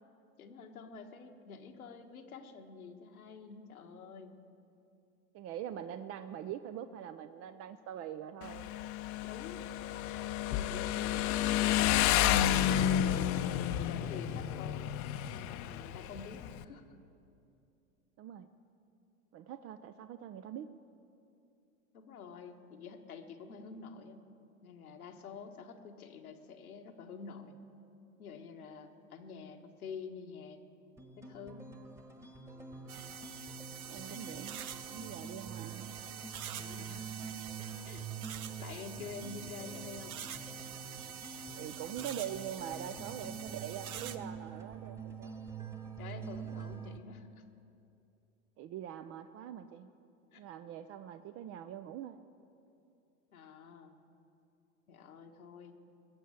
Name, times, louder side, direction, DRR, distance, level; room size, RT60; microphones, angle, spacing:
voice 1, 0.4-4.3 9.2-15.0 15.3-16.8 21.9-24.3 24.6-27.6 28.2-30.6 31.2-31.7 36.6-37.1 37.9-38.0 38.6-40.2 46.0-47.3 50.3-50.4 53.3-53.9 54.9-55.8, left 5 dB, 90° left, 3 dB, 1.6 m, -48 dB
voice 2, 5.3-8.7 18.2-18.5 19.3-20.7 33.9-35.9 41.6-45.4 48.6-49.9 50.4-52.2, right 10 dB, 35° right, 10 dB, 0.5 m, -43 dB
Motorcycle, 8.4-16.6, left 11 dB, 40° left, 0.7 m, -31 dB
sound 1, 31.0-47.0, right 5 dB, 5° right, 1.3 m, -46 dB
sound 2, 32.9-44.2, right 9 dB, 85° right, 0.9 m, -46 dB
21.0 x 7.3 x 8.8 m, 2.6 s
hypercardioid pair, 100°, 42 cm